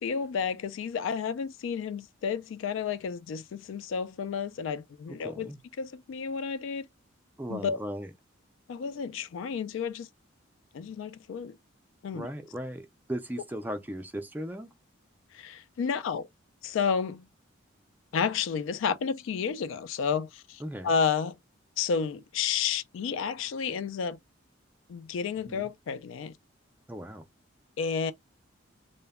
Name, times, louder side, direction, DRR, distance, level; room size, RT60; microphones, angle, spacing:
voice 1, 0.0-5.5 5.8-6.9 7.5-7.8 8.7-10.1 10.7-11.6 12.0-12.3 15.3-16.3 16.6-17.3 18.1-21.4 21.8-24.2 24.9-26.3 27.8-28.1, left 6 dB, 75° left, 0.3 m, -31 dB
voice 2, 5.2-5.6 7.4-8.1 12.1-14.7 20.6-20.9 25.5-25.7 26.9-27.2, equal, 10° right, 0.3 m, -37 dB
2.1 x 2.1 x 3.3 m
head